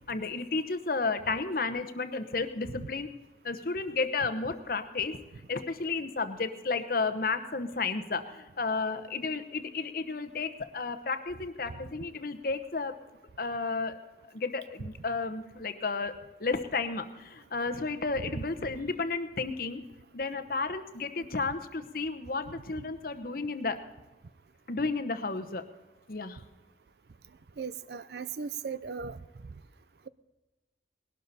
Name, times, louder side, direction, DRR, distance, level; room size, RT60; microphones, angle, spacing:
voice 1, 0.1-3.1 3.4-5.2 5.5-13.0 13.4-14.0 14.3-16.1 16.4-19.8 20.1-23.8 24.7-25.6 26.1-26.4, left 4 dB, 55° left, 10 dB, 1.0 m, -32 dB
voice 2, 27.6-29.2, right 6 dB, 65° right, 15 dB, 0.5 m, -37 dB
19.5 x 12.0 x 4.1 m, 1.2 s
head